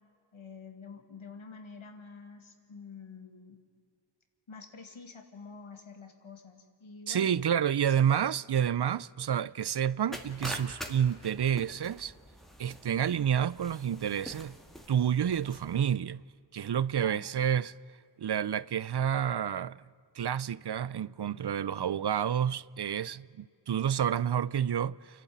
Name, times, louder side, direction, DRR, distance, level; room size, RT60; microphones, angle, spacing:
voice 1, 0.3-3.6 4.5-7.3 7.9-8.0 17.0-17.5, left 5 dB, 85° left, 2.2 m, -48 dB
voice 2, 7.1-12.1 12.6-14.6 14.9-16.2 16.5-17.7 18.2-19.8 20.2-25.2, right 9 dB, 60° right, 0.5 m, -29 dB
sound 1, 10.1-15.9, equal, ahead, 2.2 m, -45 dB
29.0 x 11.5 x 9.3 m
wide cardioid pair, 55°, 47 cm